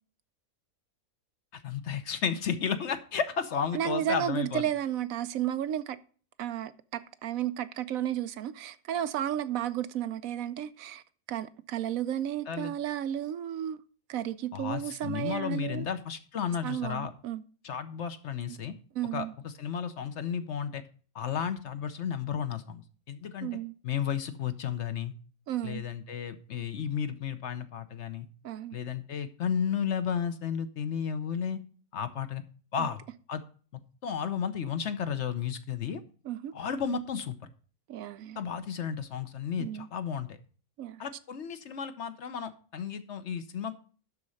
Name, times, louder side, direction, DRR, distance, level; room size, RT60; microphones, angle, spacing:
voice 1, 1.5-4.7 12.5-12.7 14.5-17.1 17.6-18.7 19.1-20.8 21.1-23.5 23.8-25.1 25.6-28.3 28.7-31.6 31.9-32.4 32.7-33.0 33.3-33.4 34.0-36.0 36.5-37.4 38.4-40.4 41.0-43.8, left 7 dB, 55° left, 1.0 m, -33 dB
voice 2, 3.7-6.0 6.4-11.0 11.3-13.8 14.1-15.9 16.6-17.4 18.9-19.3 23.4-23.8 25.5-25.8 28.4-28.8 32.8-32.9 36.2-36.5 37.9-38.4 39.6-39.9 40.8-41.0, right 11 dB, 75° right, 1.0 m, -33 dB
12.0 x 4.2 x 6.3 m
omnidirectional pair, 1.5 m